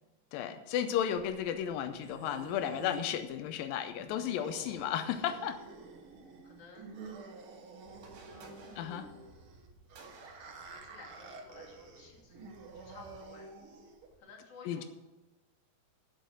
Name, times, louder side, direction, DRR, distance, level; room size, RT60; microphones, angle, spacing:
voice 1, 0.3-5.6 8.8-9.1 14.7-14.8, left 9 dB, 90° left, 9 dB, 2.1 m, -34 dB
sound 1, 1.2-14.2, right 3 dB, 85° right, 1.1 m, -50 dB
voice 2, 6.4-7.0 8.3-9.2 10.0-10.1 10.5-13.5 14.2-14.9, left 4 dB, 40° left, 0 dB, 3.0 m, -55 dB
sound 2, 7.9-13.2, right 3 dB, 65° right, 3.8 m, -57 dB
10.5 x 7.8 x 7.6 m, 1.1 s
omnidirectional pair, 4.7 m